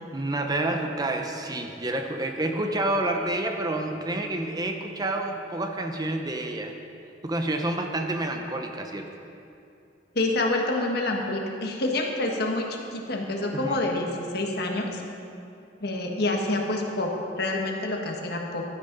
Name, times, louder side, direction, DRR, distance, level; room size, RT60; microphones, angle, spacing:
voice 1, 0.1-6.7 7.2-9.1 13.5-13.8, right 2 dB, 20° right, 4 dB, 0.8 m, -29 dB
voice 2, 10.1-15.0 15.8-18.6, left 2 dB, 60° left, 1 dB, 1.5 m, -27 dB
15.5 x 12.0 x 4.0 m, 2.6 s
head